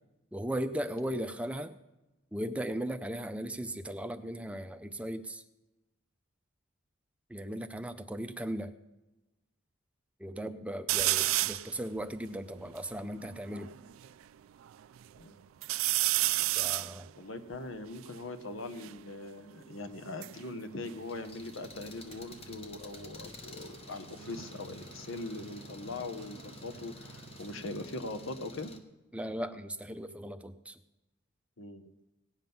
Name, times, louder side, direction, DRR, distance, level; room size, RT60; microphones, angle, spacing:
voice 1, 0.3-1.8 2.3-5.4 7.3-8.7 10.2-13.7 16.5-17.1 29.1-30.8, right 1 dB, 5° right, 9 dB, 0.5 m, -37 dB
sound 1, 10.9-11.7 12.3-12.4 12.6-14.1 14.6-15.2 15.6-19.0 19.9-21.8 22.1-22.6 24.2-26.8 27.1-27.9, right 18 dB, 80° right, 0.3 m, -33 dB
voice 2, 17.2-28.7 31.6-31.9, left 2 dB, 75° left, 8 dB, 1.0 m, -41 dB
Engine, 21.0-28.8, left 2 dB, 30° left, 1.1 m, -50 dB
18.0 x 7.5 x 5.5 m, 1.0 s
head